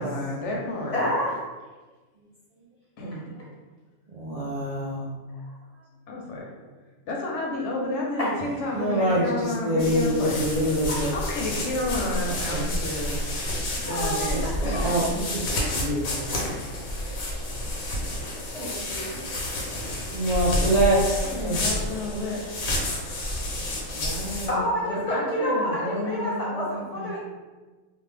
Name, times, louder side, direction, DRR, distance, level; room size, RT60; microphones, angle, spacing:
voice 1, 0.0-1.0 3.0-3.3 5.3-5.5 6.1-6.6 7.1-10.7 11.1-13.2 13.8-15.4 21.2-22.6 23.9-27.2, left 1 dB, 70° left, -2 dB, 0.8 m, -31 dB
voice 2, 0.9-1.4 8.2-8.3 9.1-9.2 13.9-14.9 17.7-18.2 18.5-19.2 24.5-27.2, equal, 40° left, -5 dB, 0.6 m, -29 dB
voice 3, 4.1-5.1 8.7-11.1 12.5-12.7 14.3-15.0 15.5-16.3 20.1-21.6, right 1 dB, 80° right, -7 dB, 0.3 m, -25 dB
sound 1, 9.8-24.5, left 1 dB, 85° left, 1.1 m, -30 dB
2.5 x 2.1 x 3.2 m, 1.3 s
omnidirectional pair, 1.4 m